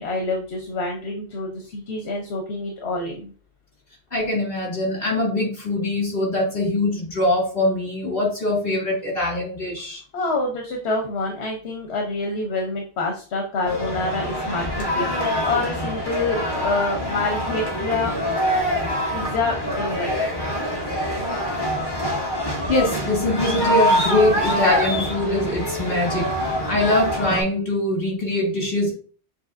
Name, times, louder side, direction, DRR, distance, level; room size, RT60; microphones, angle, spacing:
voice 1, 0.0-3.3 10.1-18.1 19.1-20.1, left 3 dB, 80° left, 2 dB, 1.1 m, -27 dB
voice 2, 4.1-10.0 22.7-28.9, left 1 dB, 60° left, -4 dB, 2.7 m, -23 dB
sound 1, 13.6-27.4, equal, 25° left, 1.2 m, -25 dB
6.8 x 2.8 x 2.5 m, 0.40 s
omnidirectional pair, 1.1 m